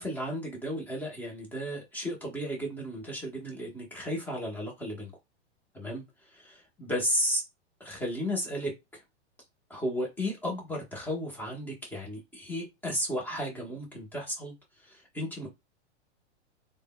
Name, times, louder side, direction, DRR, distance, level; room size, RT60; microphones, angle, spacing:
voice 1, 0.0-5.1 5.7-6.0 6.3-7.4 7.8-9.0 9.7-14.5 14.8-15.5, equal, 5° left, 0.9 m, -34 dB
3.4 x 2.2 x 2.2 m
hypercardioid pair, 130°, 35 cm